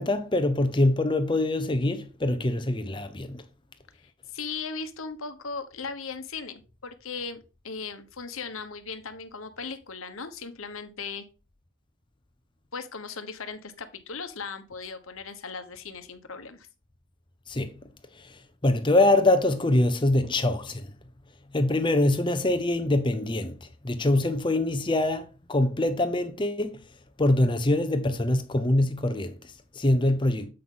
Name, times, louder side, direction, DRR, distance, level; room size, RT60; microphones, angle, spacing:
voice 1, 0.0-3.4 17.5-17.8 18.1-20.9 21.5-26.8 27.2-30.5, left 1 dB, 20° left, 0.7 m, -24 dB
voice 2, 3.9-11.3 12.7-16.7, left 5 dB, 70° left, 1.0 m, -38 dB
7.7 x 5.6 x 3.8 m
head